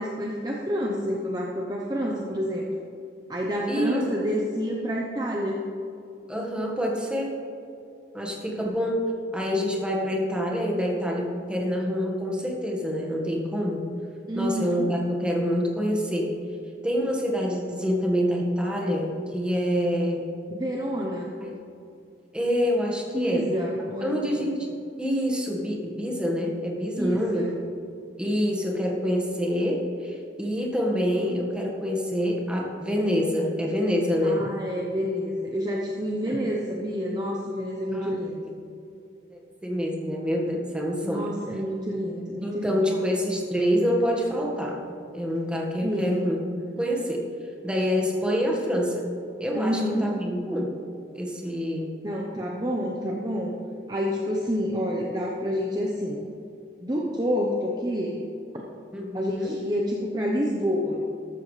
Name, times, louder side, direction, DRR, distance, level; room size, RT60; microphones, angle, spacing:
voice 1, 0.0-2.7 3.3-5.6 14.3-14.9 20.5-21.3 23.1-24.7 27.0-27.5 34.2-38.4 41.0-42.8 45.8-46.2 49.5-50.1 52.0-53.5 53.9-56.2 56.8-58.2 58.5-58.6 59.1-61.0, equal, 20° right, -2 dB, 0.9 m, -28 dB
voice 2, 3.7-4.1 6.3-7.4 8.1-9.1 9.3-13.9 14.3-16.3 16.8-20.2 21.4-21.6 22.3-23.5 24.0-24.7 25.0-27.5 28.2-34.4 37.9-38.1 39.3-41.3 42.4-44.8 45.1-46.4 46.8-47.2 47.6-49.0 49.4-50.8 51.1-51.9 58.9-59.6, equal, 5° right, -2 dB, 1.7 m, -26 dB
14.0 x 13.0 x 3.3 m, 2.6 s
head